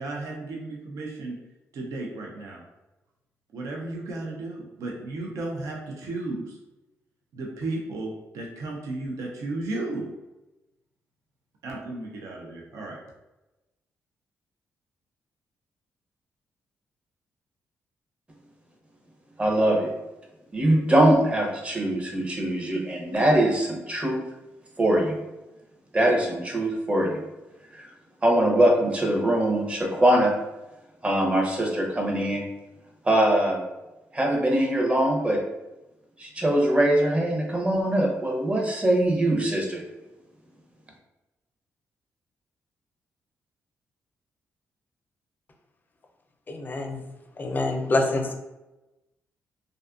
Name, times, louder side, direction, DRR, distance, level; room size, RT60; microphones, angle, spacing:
voice 1, 0.0-1.4 1.7-2.6 3.5-6.6 7.3-10.1 11.6-13.0, right 2 dB, 75° right, -1 dB, 0.5 m, -34 dB
voice 2, 19.4-19.9 20.5-24.2 24.8-25.2 25.9-27.2 27.7-27.9 28.2-30.3 31.0-32.4 33.0-33.6 34.1-35.4 36.2-39.8, right 1 dB, 20° right, 0 dB, 0.7 m, -22 dB
voice 3, 46.5-47.0 47.4-48.3, left 2 dB, 35° left, 3 dB, 0.4 m, -26 dB
2.6 x 2.3 x 2.4 m, 1.0 s
cardioid pair, 85°, 5 cm